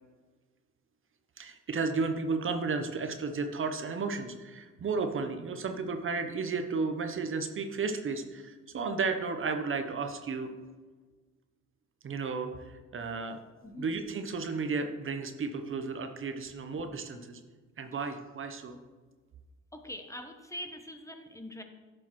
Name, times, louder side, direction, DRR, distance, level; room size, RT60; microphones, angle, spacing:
voice 1, 1.4-10.5 12.0-13.4 13.8-17.4 17.8-18.8, right 4 dB, 45° right, 7 dB, 0.8 m, -33 dB
voice 2, 19.7-21.6, equal, 10° left, 5 dB, 0.8 m, -43 dB
10.5 x 6.3 x 3.0 m, 1.4 s
cardioid pair, 90°, 30 cm